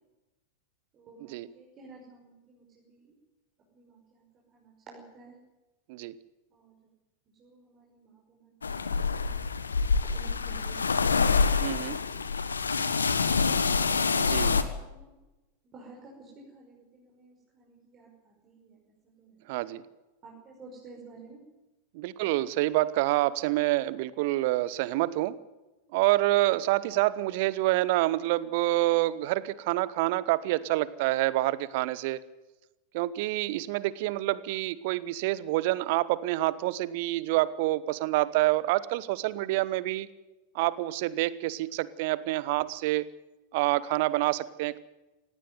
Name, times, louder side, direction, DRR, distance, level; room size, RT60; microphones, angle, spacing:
voice 1, 0.9-3.1 3.7-4.2 4.5-5.4 6.5-6.7 7.4-11.6 14.6-15.2 15.6-18.8 19.2-19.4 20.2-21.4, right 3 dB, 30° right, -2 dB, 5.8 m, -52 dB
sound 1, 8.6-14.6, left 5 dB, 75° left, 1.3 m, -26 dB
voice 2, 11.6-12.0 14.2-14.6 19.5-19.8 21.9-25.3 25.9-32.2 32.9-40.1 40.5-43.1 43.5-44.8, right 17 dB, 50° right, 19 dB, 1.0 m, -27 dB
18.5 x 16.5 x 9.4 m, 1.1 s
figure-of-eight pair, 90°, 0 cm